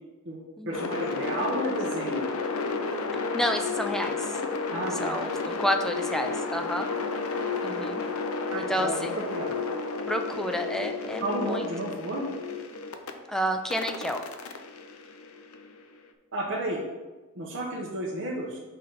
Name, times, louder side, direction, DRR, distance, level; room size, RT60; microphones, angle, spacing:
voice 1, 0.2-2.2 4.7-5.2 8.5-9.5 11.2-12.3 16.3-16.8 17.3-18.6, right 1 dB, 60° right, -3 dB, 0.9 m, -32 dB
sound 1, 0.7-13.1 13.7-15.8, left 4 dB, 90° left, 0.6 m, -32 dB
voice 2, 3.1-4.3 5.0-6.9 7.6-8.0 8.6-9.3 10.1-11.7 13.3-14.2, equal, ahead, 5 dB, 0.4 m, -30 dB
5.7 x 3.9 x 5.5 m, 1.2 s
head